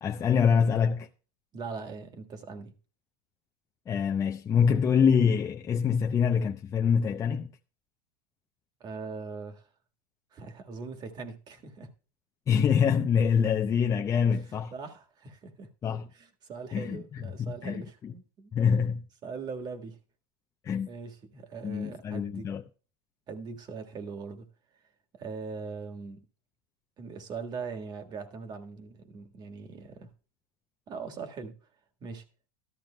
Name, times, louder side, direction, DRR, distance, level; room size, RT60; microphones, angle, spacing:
voice 1, 0.0-1.1 3.9-7.5 12.5-14.7 15.8-16.1 16.7-18.1 18.5-19.0 20.6-20.9 21.6-22.6, left 7 dB, 25° left, 0.6 m, -25 dB
voice 2, 1.5-2.7 8.8-9.7 10.3-11.9 14.3-15.7 16.1-18.5 19.2-20.0 20.9-22.5 23.3-24.5 25.1-26.2 27.0-30.1 30.9-31.5 32.0-32.2, right 4 dB, 35° right, 1.6 m, -41 dB
13.0 x 12.0 x 2.2 m
hypercardioid pair, 105°, 12 cm